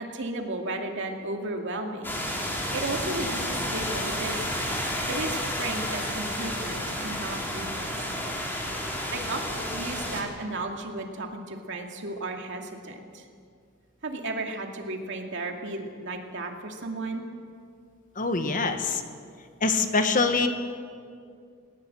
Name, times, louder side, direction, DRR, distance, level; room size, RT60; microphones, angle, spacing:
voice 1, 0.0-2.1 2.7-4.5 5.1-7.7 7.9-8.1 9.1-13.3 14.0-17.3, right 2 dB, 60° right, 2 dB, 2.4 m, -34 dB
sound 1, 2.0-10.2, equal, 10° left, 3.3 m, -31 dB
voice 2, 18.2-19.0 19.6-20.5, left 4 dB, 40° left, 6 dB, 1.4 m, -24 dB
19.5 x 19.5 x 7.7 m, 2.2 s
head